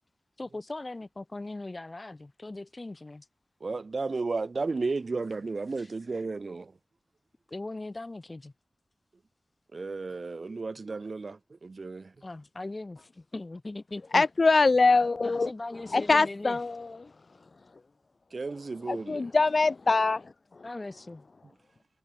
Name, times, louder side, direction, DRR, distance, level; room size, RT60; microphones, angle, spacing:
voice 1, 0.4-3.3 5.8-5.9 7.5-8.5 12.2-14.3 15.2-16.6 20.6-21.2, left 2 dB, 35° left, 7.1 m, -39 dB
voice 2, 3.6-6.7 9.7-12.1 18.3-19.3, right 3 dB, 60° right, 4.0 m, -33 dB
voice 3, 14.1-15.5 15.9-16.9 18.9-20.2, left 3 dB, 55° left, 0.8 m, -23 dB
wide cardioid pair, 70°, 0 cm